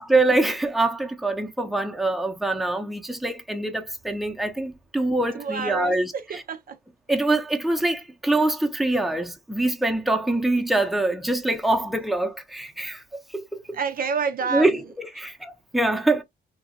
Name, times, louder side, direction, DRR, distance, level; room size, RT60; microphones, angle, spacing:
voice 1, 0.0-6.4 7.1-13.0 13.3-13.8 14.5-16.2, right 2 dB, ahead, 0.7 m, -24 dB
voice 2, 5.3-6.8 13.7-14.8, right 6 dB, 45° right, 0.4 m, -28 dB
2.9 x 2.5 x 2.5 m
cardioid pair, 90°, 20 cm